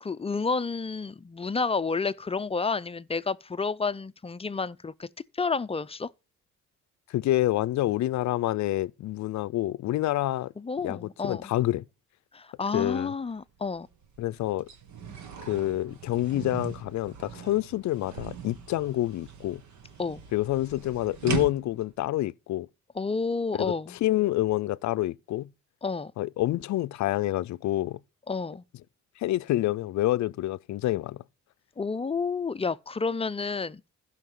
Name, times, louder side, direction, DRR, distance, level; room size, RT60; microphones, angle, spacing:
voice 1, 0.0-5.1 5.3-6.1 10.6-11.5 12.3-13.9 20.0-20.2 23.0-24.0 25.8-26.1 28.3-28.6 31.8-33.8, left 4 dB, 20° left, 0.5 m, -30 dB
voice 2, 7.1-10.5 10.8-11.8 12.7-13.1 14.2-14.7 15.5-19.6 20.3-22.7 23.6-25.5 26.2-28.0 29.2-31.2, left 15 dB, 65° left, 0.5 m, -27 dB
sound 1, 13.1-13.2 13.6-21.9, right 8 dB, 70° right, 1.8 m, -40 dB
15.0 x 5.8 x 3.8 m
cardioid pair, 90°, 30 cm